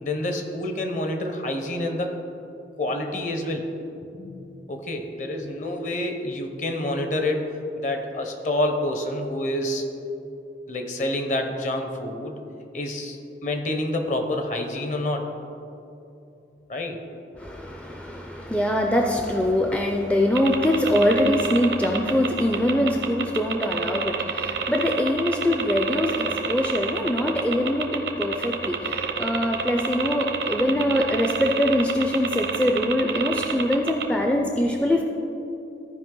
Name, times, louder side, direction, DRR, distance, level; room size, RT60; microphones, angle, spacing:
voice 1, 0.0-2.1 2.8-3.6 4.0-7.4 7.8-9.8 10.7-12.4 12.7-15.3 16.7-17.0, left 1 dB, 45° left, 5 dB, 0.8 m, -28 dB
voice 2, 17.4-35.0, left 1 dB, 5° left, 1 dB, 0.4 m, -23 dB
sound 1, 20.4-34.1, right 6 dB, 80° right, 0.7 m, -28 dB
14.0 x 5.0 x 3.8 m, 2.8 s
head